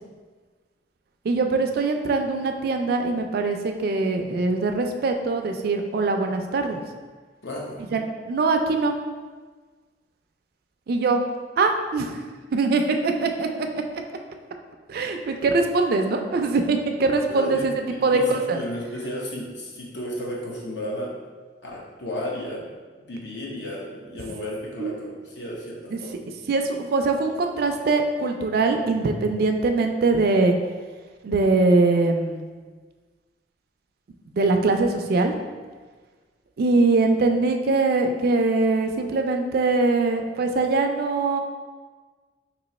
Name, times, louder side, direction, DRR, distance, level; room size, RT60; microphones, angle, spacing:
voice 1, 1.2-6.8 7.9-8.9 10.9-11.2 11.6-12.2 12.5-13.7 13.9-14.0 14.9-17.7 18.0-18.6 24.8-24.9 25.9-26.0 26.5-30.6 31.2-32.5 34.3-35.3 36.6-41.4, right 3 dB, 55° right, 5 dB, 0.3 m, -22 dB
voice 2, 7.4-7.8 17.3-17.7 18.1-21.2 21.6-22.7 23.0-26.2, left 1 dB, 70° left, -3 dB, 0.8 m, -33 dB
3.0 x 2.8 x 4.0 m, 1.4 s
head